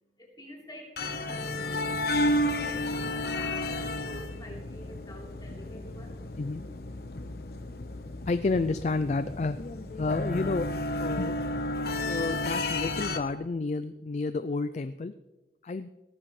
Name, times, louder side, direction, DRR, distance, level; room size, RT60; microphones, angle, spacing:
voice 1, 0.2-2.1 2.3-6.2, left 1 dB, 20° left, -3 dB, 3.5 m, -47 dB
sound 1, 1.0-13.2, left 1 dB, 55° left, 1.0 m, -32 dB
voice 2, 8.3-10.7 11.0-11.3 12.0-15.1 15.6-15.9, left 3 dB, 40° left, 12 dB, 0.4 m, -30 dB
18.0 x 14.5 x 3.2 m, 1.1 s
head